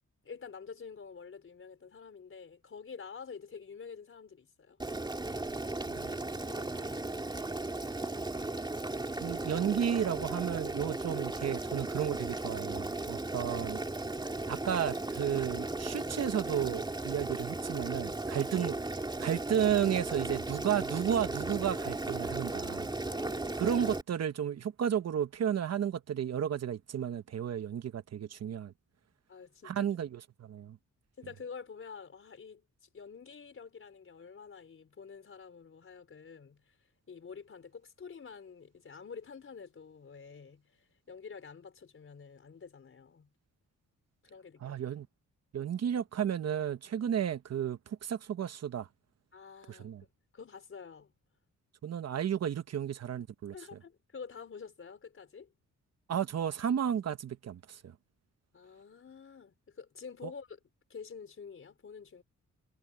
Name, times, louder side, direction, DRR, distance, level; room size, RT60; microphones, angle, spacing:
voice 1, 0.2-4.8 6.3-7.6 23.1-23.8 29.3-29.9 31.2-36.8 37.1-43.3 44.2-44.8 49.3-51.1 53.5-55.5 58.5-60.6 60.9-62.2, left 5 dB, 45° left, 4.5 m, -48 dB
Boiling, 4.8-24.0, right 2 dB, 15° right, 2.9 m, -36 dB
voice 2, 9.2-13.8 14.5-18.7 19.2-22.9 23.6-28.7 29.6-30.8 44.6-45.1 45.5-48.9 49.7-50.0 51.8-53.5 56.1-57.9, right 9 dB, 60° right, 1.0 m, -33 dB
wide cardioid pair, 140°, 30 cm